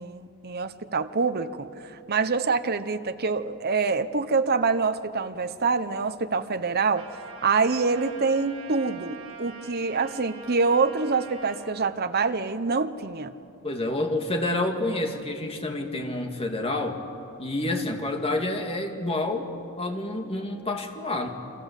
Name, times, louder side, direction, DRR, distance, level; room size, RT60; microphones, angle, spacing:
voice 1, 0.0-7.0 7.4-13.3, right 4 dB, 45° right, 10 dB, 1.0 m, -26 dB
Trumpet, 6.9-11.6, right 4 dB, 80° right, 6.8 m, -44 dB
voice 2, 13.6-17.0 17.4-19.5 19.8-21.3, left 2 dB, 25° left, 4 dB, 2.3 m, -28 dB
28.5 x 24.5 x 8.3 m, 2.8 s
head